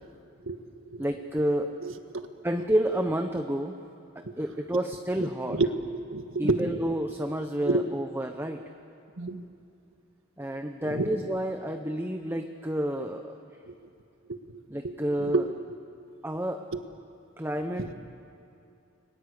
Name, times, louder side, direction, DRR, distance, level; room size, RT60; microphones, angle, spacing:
voice 1, 1.0-1.7 2.4-3.8 4.1-5.6 6.4-8.6 10.4-13.4 14.7-15.5 16.2-16.6 17.4-17.9, right 1 dB, 10° right, 5 dB, 0.9 m, -30 dB
voice 2, 1.8-2.3 2.5-2.6 4.2-4.3 5.2-5.7 5.9-6.8 7.6-7.8 9.2-9.4 10.8-11.1 13.7-13.8 14.3-15.5 16.7-16.8 17.8-17.9, right 2 dB, 75° right, 8 dB, 1.5 m, -30 dB
30.0 x 23.0 x 8.3 m, 2.5 s
head